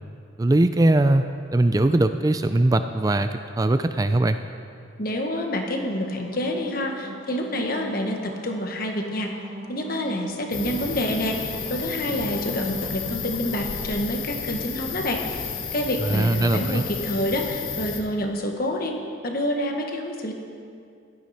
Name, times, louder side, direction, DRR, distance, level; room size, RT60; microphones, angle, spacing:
voice 1, 0.4-1.3 1.5-4.4 16.0-16.8, right 2 dB, 20° right, 9 dB, 0.3 m, -20 dB
voice 2, 5.0-9.3 9.7-15.4 15.7-18.9 19.2-20.3, left 1 dB, 45° left, 3 dB, 1.4 m, -27 dB
sound 1, 5.7-13.7, right 1 dB, 65° right, 2.1 m, -41 dB
sound 2, 10.5-18.0, left 5 dB, 80° left, 1.3 m, -32 dB
15.5 x 12.5 x 4.3 m, 2.4 s
head